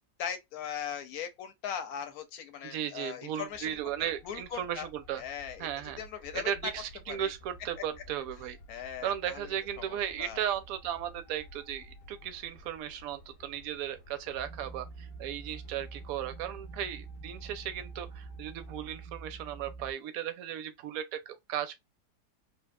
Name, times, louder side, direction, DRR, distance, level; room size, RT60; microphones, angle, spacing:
voice 1, 0.2-3.7 4.0-4.9 5.2-5.7 6.0-6.5 7.1-7.3 7.8-7.9 8.7-9.5 9.8-10.4, left 8 dB, 70° left, 1.0 m, -39 dB
voice 2, 2.6-5.2 5.6-6.0 6.3-8.6 9.0-21.7, right 10 dB, 70° right, 1.0 m, -36 dB
sound 1, 3.5-19.0, equal, 50° left, 0.7 m, -54 dB
sound 2, 14.4-19.9, right 4 dB, 85° right, 1.3 m, -46 dB
3.5 x 2.4 x 2.3 m
omnidirectional pair, 1.8 m